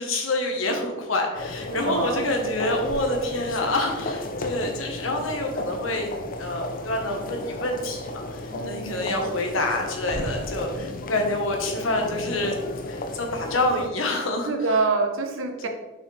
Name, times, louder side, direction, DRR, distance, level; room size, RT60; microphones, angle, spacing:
voice 1, 0.0-6.1 6.4-12.5 12.9-14.5, left 2 dB, 80° left, 2 dB, 1.3 m, -27 dB
sound 1, 1.3-13.9, left 2 dB, 45° left, 0.6 m, -34 dB
voice 2, 1.7-2.2 8.5-9.2 14.4-15.7, right 3 dB, 80° right, 4 dB, 0.9 m, -26 dB
sound 2, 2.6-4.0 5.7-7.2 8.0-8.1 8.7-8.8 9.9-10.8, equal, 60° left, 1.3 m, -40 dB
6.1 x 6.1 x 3.3 m, 1.2 s
head